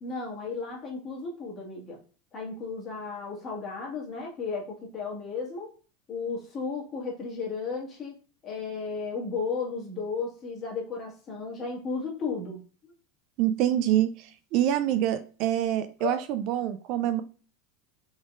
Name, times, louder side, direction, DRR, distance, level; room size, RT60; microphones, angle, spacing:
voice 1, 0.0-2.0 2.3-5.7 6.1-12.6 16.0-16.2, left 4 dB, 25° left, -2 dB, 1.5 m, -34 dB
voice 2, 13.4-17.2, right 12 dB, 45° right, 10 dB, 0.3 m, -26 dB
4.0 x 3.9 x 2.4 m, 0.38 s
supercardioid pair, 160°, 0 cm